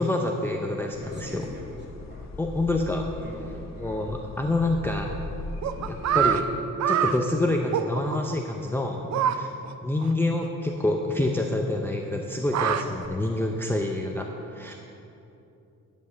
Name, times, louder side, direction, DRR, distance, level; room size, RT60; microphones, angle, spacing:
voice 1, 0.0-1.4 2.4-3.1 3.8-5.1 5.9-6.5 6.9-9.5 9.8-14.8, left 2 dB, 5° left, 1 dB, 0.5 m, -27 dB
sound 1, 0.9-6.5, left 3 dB, 60° left, 0.8 m, -40 dB
voice 2, 1.0-2.3 3.1-4.0 9.1-9.3 13.3-13.5, right 1 dB, 35° right, -3 dB, 2.2 m, -45 dB
sound 2, 4.1-4.2 4.5-5.5 5.7-7.3, right 8 dB, 75° right, 1.8 m, -39 dB
sound 3, 5.6-6.4 6.8-7.2 7.7-8.3 9.1-9.3 9.6-9.7 10.0-10.1 10.4-10.5 12.3-13.1, right 9 dB, 60° right, 0.5 m, -24 dB
10.5 x 5.3 x 7.4 m, 2.7 s
wide cardioid pair, 130°, 31 cm